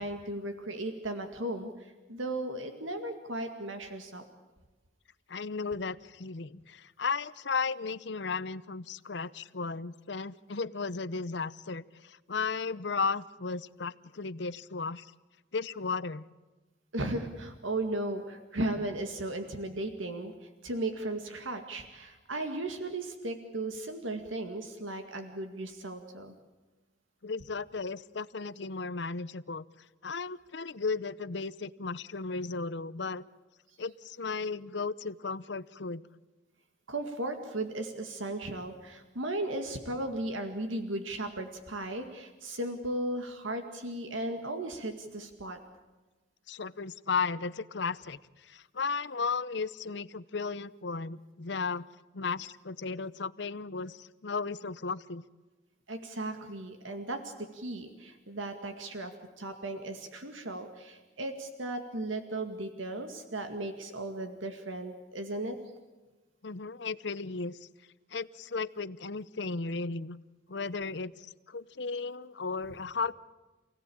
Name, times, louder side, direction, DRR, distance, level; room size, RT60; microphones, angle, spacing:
voice 1, 0.0-1.7 2.1-4.2 16.9-26.3 36.9-45.6 55.9-59.1 59.4-65.6, right 1 dB, 90° right, 6 dB, 2.1 m, -36 dB
voice 2, 5.3-15.1 15.5-16.3 27.2-29.6 30.0-33.2 33.8-36.0 46.5-51.9 52.1-55.2 66.4-67.7 68.1-70.2 70.5-73.1, left 4 dB, 65° left, 15 dB, 0.8 m, -35 dB
28.5 x 17.0 x 8.7 m, 1.2 s
head